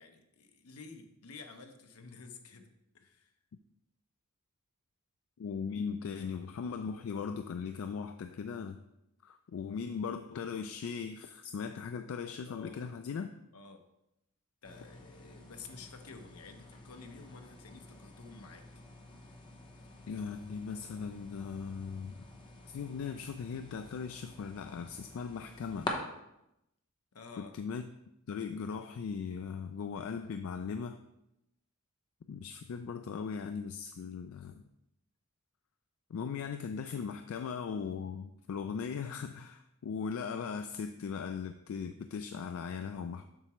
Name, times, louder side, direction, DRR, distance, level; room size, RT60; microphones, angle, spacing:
voice 1, 0.0-3.3 12.5-12.9 13.5-13.9 14.6-18.8 27.1-27.5, left 4 dB, 80° left, 5 dB, 0.8 m, -51 dB
voice 2, 5.4-8.8 9.2-13.3 20.1-22.2 22.7-25.9 27.4-27.8 28.3-31.0 32.3-34.6 36.1-43.3, left 6 dB, 65° left, 8 dB, 0.3 m, -38 dB
sound 1, 14.6-25.9, left 2 dB, 20° left, 0.8 m, -48 dB
7.4 x 5.7 x 3.0 m, 0.85 s
head